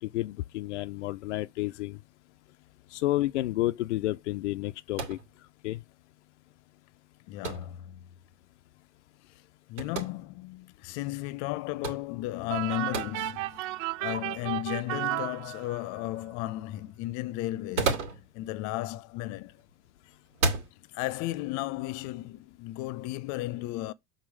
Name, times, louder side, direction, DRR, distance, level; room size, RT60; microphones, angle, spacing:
voice 1, 0.0-2.0 2.9-5.2 5.6-5.8, left 17 dB, 85° left, 0.5 m, -30 dB
sound 1, 4.9-5.3 7.4-7.7 9.8-10.1 11.8-12.1 12.9-13.1 14.1-14.2 17.5-18.3 19.4-19.7 20.3-20.7, right 3 dB, 85° right, 2.8 m, -30 dB
voice 2, 7.3-8.1 9.7-19.6 20.9-23.9, left 16 dB, 55° left, 0.8 m, -34 dB
sound 2, 12.5-16.0, right 19 dB, 55° right, 0.5 m, -34 dB
6.3 x 4.1 x 6.1 m
hypercardioid pair, 95°, 35 cm